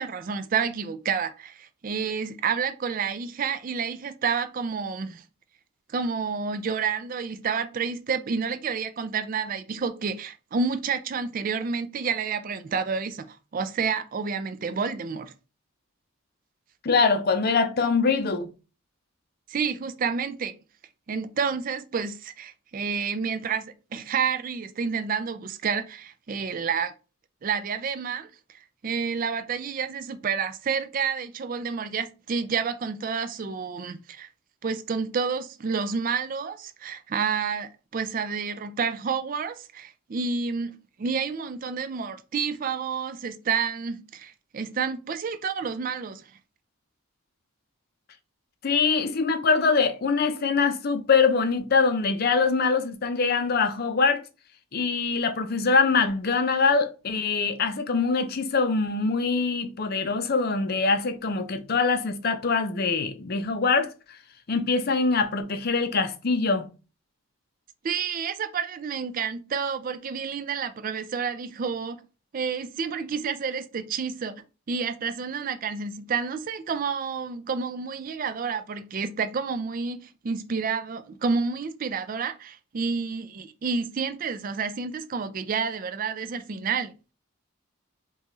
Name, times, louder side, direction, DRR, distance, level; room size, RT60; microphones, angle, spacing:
voice 1, 0.0-5.2 5.9-15.3 19.5-20.5 21.1-26.9 27.4-28.3 28.8-34.3 34.6-40.7 41.0-46.2 67.8-72.0 72.3-74.3 74.7-86.9, right 5 dB, 40° right, 0.3 m, -29 dB
voice 2, 16.8-18.5 48.6-54.2 54.7-64.2 64.5-66.7, left 4 dB, 45° left, 0.5 m, -23 dB
5.5 x 2.3 x 3.0 m
head